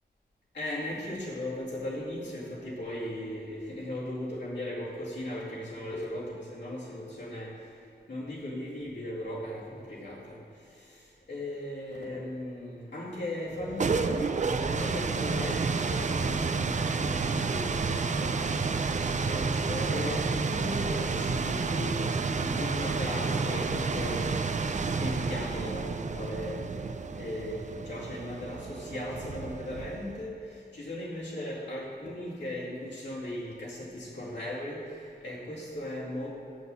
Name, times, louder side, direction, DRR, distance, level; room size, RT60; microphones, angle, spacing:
voice 1, 0.5-7.7 8.1-18.4 19.3-24.3 25.0-26.7 27.1-36.3, left 1 dB, 90° left, -6 dB, 2.3 m, -37 dB
sound 1, 13.5-30.2, right 4 dB, 45° right, 0.4 m, -30 dB
6.8 x 6.4 x 7.0 m, 2.5 s
wide cardioid pair, 75°, 18 cm